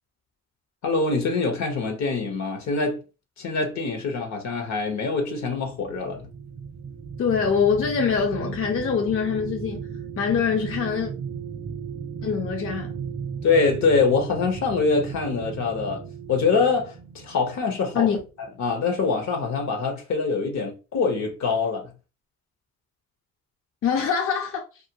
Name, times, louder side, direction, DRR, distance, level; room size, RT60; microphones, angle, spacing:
voice 1, 0.8-3.0 3.4-6.3 13.4-16.0 16.3-18.1 18.6-21.9, left 4 dB, 65° left, 0.9 m, -24 dB
sound 1, 5.5-18.3 18.8-19.0, right 6 dB, 35° right, 0.6 m, -36 dB
voice 2, 7.2-9.9 10.2-11.1 12.2-12.9 17.9-18.2 23.8-24.6, left 6 dB, 45° left, 0.6 m, -24 dB
2.4 x 2.3 x 2.8 m
cardioid pair, 90°, 30 cm